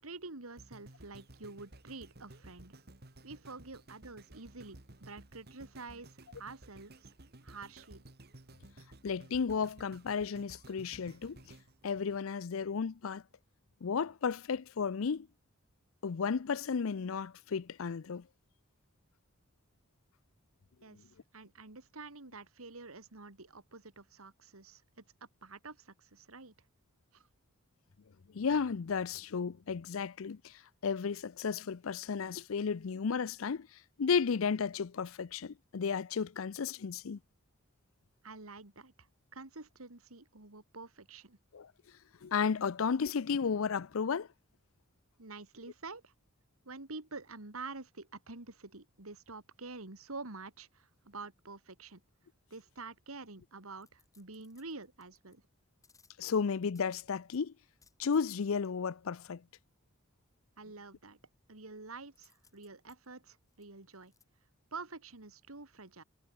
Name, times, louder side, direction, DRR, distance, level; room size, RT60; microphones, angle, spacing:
voice 1, 0.0-2.7 3.2-7.1 7.4-8.0 20.8-26.5 27.1-27.3 38.2-41.4 45.2-46.1 46.6-52.0 52.5-55.4 60.6-61.2 61.5-64.1 64.7-66.0, right 3 dB, 90° right, 2.6 m, -48 dB
sound 1, 0.6-12.8 13.3-13.4, right 1 dB, 50° right, 2.3 m, -55 dB
voice 2, 9.0-11.4 11.8-13.2 13.8-15.3 16.0-18.2 28.3-33.7 34.0-37.2 41.5-41.7 42.2-44.3 56.2-57.5 58.0-59.4, left 6 dB, 75° left, 0.5 m, -33 dB
sound 2, 53.8-55.4 55.8-57.4 57.8-58.7 62.2-64.2 64.7-64.8, left 5 dB, 15° left, 7.0 m, -67 dB
head